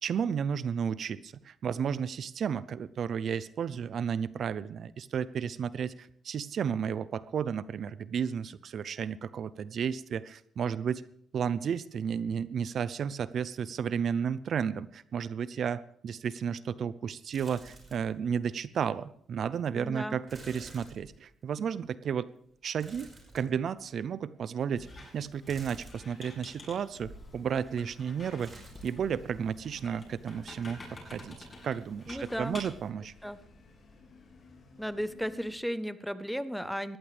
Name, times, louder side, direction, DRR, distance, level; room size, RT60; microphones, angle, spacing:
voice 1, 0.0-11.0 11.3-22.3 22.6-24.9 25.1-28.6 28.8-30.8 31.0-33.1, right 7 dB, 60° right, 17 dB, 0.6 m, -33 dB
sound 1, 17.3-18.2 18.6-18.7 20.3-21.6 22.8-23.9 25.5-26.3 28.4-29.1 29.4-30.0 30.3-30.5, right 2 dB, 30° right, 5.3 m, -51 dB
voice 2, 19.7-20.2 32.1-32.6 33.2-33.4 34.8-37.0, equal, ahead, 13 dB, 0.9 m, -35 dB
Squeak, 24.8-32.9, left 2 dB, 30° left, 7.8 m, -49 dB
sound 2, 26.9-35.5, left 3 dB, 50° left, 5.0 m, -58 dB
20.0 x 15.0 x 3.4 m, 0.68 s
cardioid pair, 90°, 0 cm